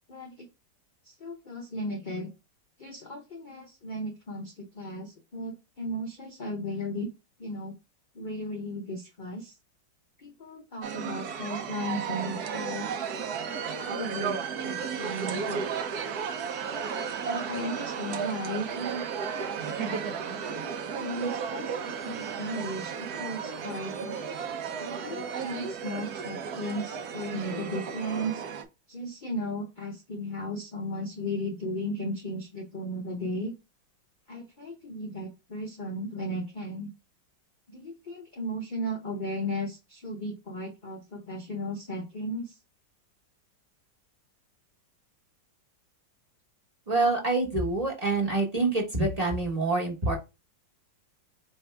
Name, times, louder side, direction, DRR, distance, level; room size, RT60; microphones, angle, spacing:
voice 1, 0.1-0.5 1.0-2.3 2.8-7.1 7.4-7.7 8.1-9.5 10.2-13.0 13.4-15.6 17.2-20.0 21.0-24.2 24.8-28.4 28.9-33.5 34.3-36.9 37.7-42.6, equal, 45° left, 1 dB, 0.6 m, -35 dB
sound 1, 10.8-28.6, right 6 dB, 65° right, 1.2 m, -34 dB
voice 2, 46.9-50.2, right 3 dB, 25° right, -1 dB, 1.2 m, -26 dB
4.6 x 3.5 x 3.3 m, 0.25 s
omnidirectional pair, 2.0 m